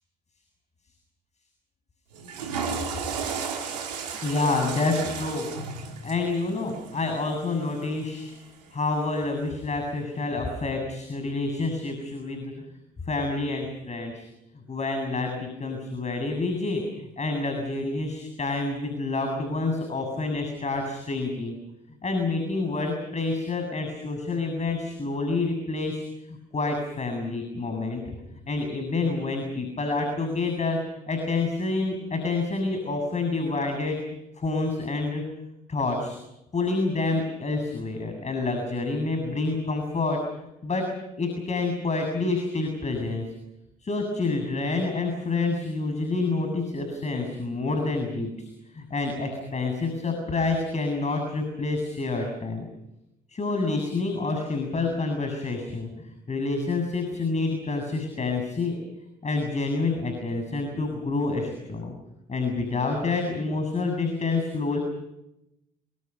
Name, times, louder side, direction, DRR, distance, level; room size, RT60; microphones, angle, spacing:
Water / Toilet flush, 2.1-8.4, right 6 dB, 90° right, 3.5 m, -34 dB
voice 1, 4.2-5.5 6.0-8.3 8.7-12.7 13.1-14.3 14.5-21.5 22.0-28.0 28.5-30.8 31.1-34.0 34.4-35.2 35.7-36.2 36.5-40.2 40.6-40.9 41.2-43.3 43.8-52.7 53.3-58.8 59.2-62.0 62.3-64.8, left 3 dB, 35° left, 4 dB, 7.6 m, -28 dB
28.0 x 26.0 x 5.7 m, 0.88 s
hypercardioid pair, 55°, 20 cm